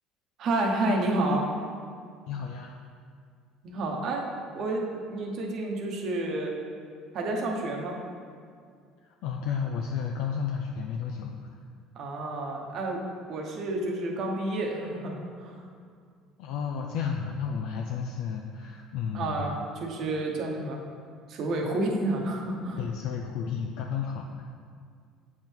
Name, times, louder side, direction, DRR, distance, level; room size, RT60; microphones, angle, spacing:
voice 1, 0.4-1.5 3.6-4.2 4.5-6.5 7.1-8.0 11.9-13.0 13.3-15.7 19.1-20.8 21.3-22.8, right 2 dB, 50° right, 0 dB, 1.0 m, -30 dB
voice 2, 2.3-2.8 9.0-11.4 16.4-19.5 22.8-24.4, left 6 dB, 75° left, 1 dB, 0.4 m, -32 dB
7.7 x 3.6 x 4.5 m, 2.2 s
cardioid pair, 115°, 0 cm